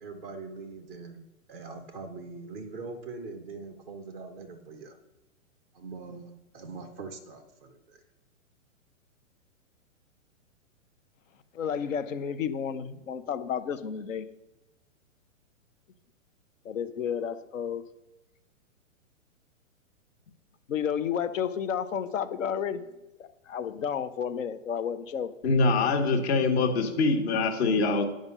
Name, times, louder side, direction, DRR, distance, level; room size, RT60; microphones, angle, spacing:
voice 1, 0.0-1.2 1.5-4.9 5.8-7.4, right 4 dB, ahead, 4 dB, 0.3 m, -42 dB
voice 2, 11.5-14.3 16.6-17.8 20.7-22.8 23.2-25.3, left 8 dB, 70° left, 12 dB, 1.0 m, -31 dB
voice 3, 25.4-28.0, left 3 dB, 50° left, 5 dB, 1.6 m, -24 dB
9.6 x 5.1 x 5.5 m, 1.0 s
hypercardioid pair, 135°, 40 cm